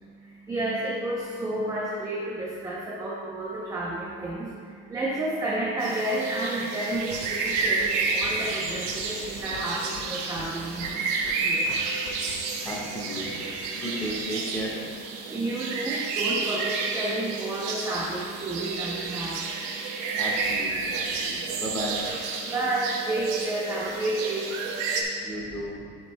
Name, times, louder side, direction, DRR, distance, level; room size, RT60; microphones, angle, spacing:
voice 1, 0.0-12.7 15.2-20.2 20.8-21.0 21.5-21.6 22.4-25.3, right 1 dB, 10° right, -5 dB, 0.7 m, -31 dB
sound 1, 5.8-25.0, right 4 dB, 55° right, 1.1 m, -30 dB
sound 2, 6.9-11.4 11.7-11.8 12.1-12.4 12.7-12.8, left 4 dB, 65° left, 1.6 m, -44 dB
voice 2, 12.6-14.8 20.1-22.0 25.2-25.8, equal, 10° left, -5 dB, 1.5 m, -34 dB
10.5 x 7.1 x 2.2 m, 2.1 s
supercardioid pair, 150°, 34 cm